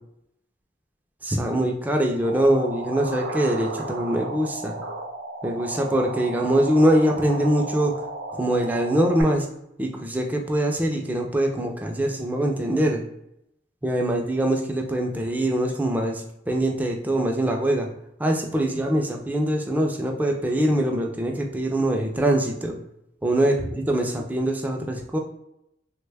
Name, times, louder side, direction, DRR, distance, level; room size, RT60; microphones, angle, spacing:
voice 1, 1.2-4.8 5.4-8.0 8.4-9.5 9.8-13.0 13.8-17.9 18.2-22.8 23.2-23.5 23.9-25.2, right 1 dB, 10° right, 2 dB, 0.3 m, -23 dB
sound 1, 2.2-9.2, right 2 dB, 80° right, 0.6 m, -34 dB
3.2 x 2.2 x 3.3 m, 0.80 s
head